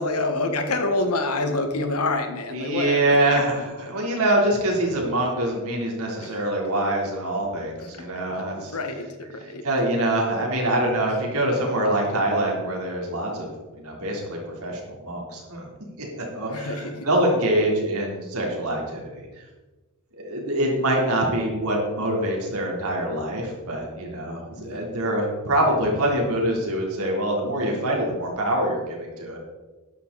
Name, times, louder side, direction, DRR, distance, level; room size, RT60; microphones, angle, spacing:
voice 1, 0.0-3.4 6.2-6.4 8.3-9.6 16.5-17.1 24.5-25.1, left 2 dB, 85° left, 6 dB, 1.6 m, -27 dB
voice 2, 2.5-8.7 9.6-13.5 13.8-15.7 16.2-19.3 20.2-29.4, right 1 dB, 80° right, -1 dB, 3.7 m, -24 dB
12.5 x 10.5 x 4.2 m, 1.2 s
head